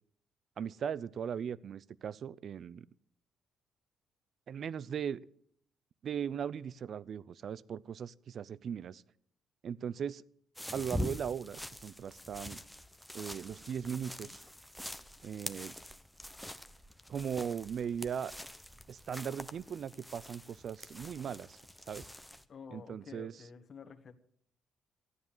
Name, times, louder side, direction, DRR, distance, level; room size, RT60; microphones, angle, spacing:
voice 1, 0.6-2.9 4.5-5.2 6.0-9.0 9.6-10.2 10.7-12.6 13.1-14.4 15.2-15.7 17.1-18.3 18.9-21.6 21.9-22.1 22.7-23.3, right 8 dB, 60° right, 21 dB, 0.5 m, -38 dB
sound 1, 10.6-22.5, left 1 dB, ahead, 0.9 m, -44 dB
voice 2, 14.0-14.4 22.5-24.1, left 6 dB, 50° left, 6 dB, 1.5 m, -50 dB
14.0 x 9.6 x 7.2 m, 0.64 s
cardioid pair, 90°, 0 cm